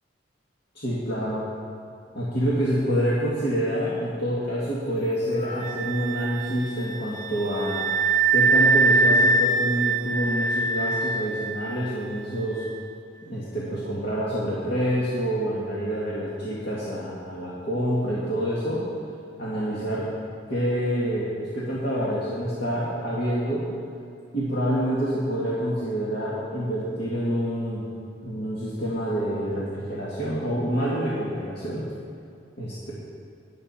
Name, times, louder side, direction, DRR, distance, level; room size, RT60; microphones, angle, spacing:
voice 1, 0.8-1.5 2.1-7.9 8.3-12.6 13.2-18.9 19.4-20.1 20.5-23.7 24.3-27.9 28.2-31.9 32.6-32.9, equal, 65° left, -7 dB, 2.1 m, -27 dB
Wind instrument woodwind instrument, 5.4-12.8, right 3 dB, 45° right, 0.7 m, -24 dB
20.5 x 8.1 x 4.4 m, 2.4 s
head